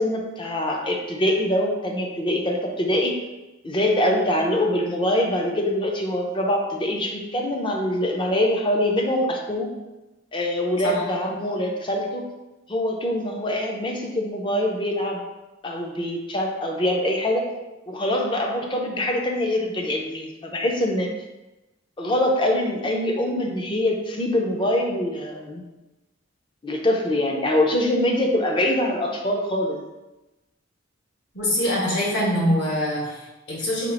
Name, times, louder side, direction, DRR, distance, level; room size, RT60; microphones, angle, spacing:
voice 1, 0.0-3.1 3.6-9.7 10.3-12.2 12.7-15.2 15.6-17.4 17.9-21.1 22.0-25.6 26.6-29.8, left 1 dB, 25° left, 1 dB, 0.6 m, -24 dB
voice 2, 31.3-33.9, equal, 65° left, -5 dB, 1.4 m, -24 dB
4.3 x 2.4 x 4.0 m, 1.0 s
head